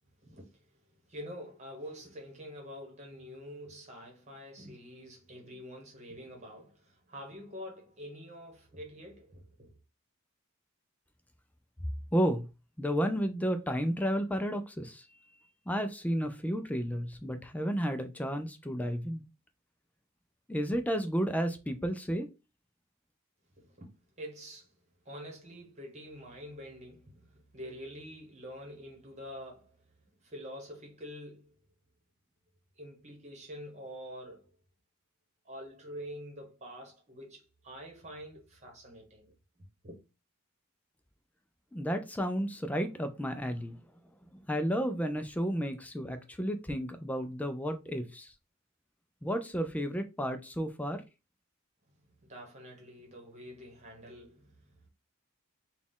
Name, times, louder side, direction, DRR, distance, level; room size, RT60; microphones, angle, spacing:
voice 1, 0.2-0.7 1.1-9.7 23.6-23.9 24.2-24.7 25.0-29.8 30.2-31.5 32.8-34.5 35.4-39.3 39.8-40.0 52.2-54.6, equal, 35° right, 1.2 m, -46 dB
voice 2, 12.1-12.5 12.8-15.1 15.7-19.2 20.5-22.3 41.7-43.8 44.3-48.3 49.2-51.0, equal, 5° left, 0.3 m, -32 dB
4.1 x 2.3 x 3.6 m
head